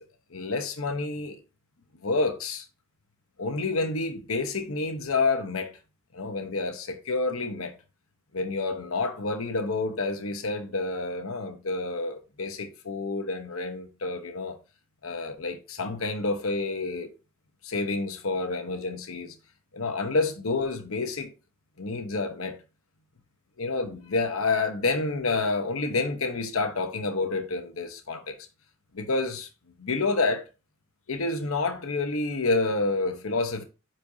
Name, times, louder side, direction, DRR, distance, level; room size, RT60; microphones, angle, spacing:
voice 1, 0.3-1.4 2.0-2.7 3.4-5.7 6.1-7.7 8.3-14.6 15.0-17.1 17.6-19.4 19.7-21.3 21.8-22.6 23.6-28.4 28.9-29.5 29.8-30.4 31.1-33.6, left 3 dB, 80° left, 1.0 m, -29 dB
9.6 x 4.4 x 2.7 m
head